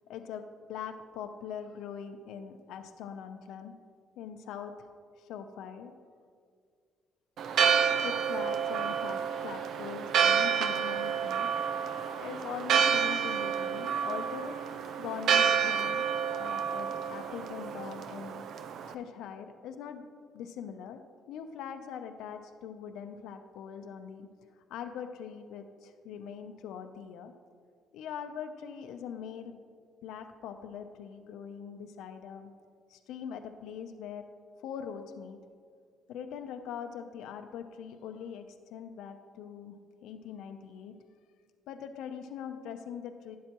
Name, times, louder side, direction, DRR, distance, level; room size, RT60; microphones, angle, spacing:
voice 1, 0.1-3.7 4.2-4.9 5.2-5.9 8.0-11.5 12.2-14.6 15.0-16.1 16.3-18.4 18.9-20.1 20.3-24.3 24.7-27.3 27.9-29.6 30.0-32.5 32.9-34.3 34.6-35.4 36.1-39.8 40.0-41.0 41.7-43.4, left 8 dB, 85° left, 7 dB, 0.6 m, -42 dB
Church bell, 7.4-18.9, right 7 dB, 60° right, 0.5 m, -29 dB
12.0 x 10.0 x 3.0 m, 2.1 s
cardioid pair, 135°, 0 cm